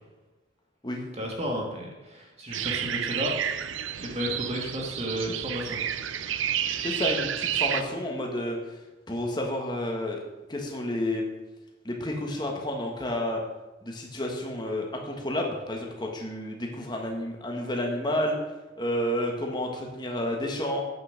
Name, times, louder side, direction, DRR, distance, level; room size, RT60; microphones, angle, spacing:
voice 1, 1.2-3.4 4.0-5.8 6.1-6.4, equal, 35° right, -1 dB, 2.0 m, -33 dB
sound 1, 2.5-7.8, right 10 dB, 75° right, 0.5 m, -30 dB
voice 2, 6.8-8.8 9.1-10.2 10.5-11.2 11.8-13.4 13.8-18.4 18.8-20.8, left 1 dB, 20° left, 1 dB, 1.5 m, -30 dB
9.2 x 5.7 x 6.6 m, 1.1 s
head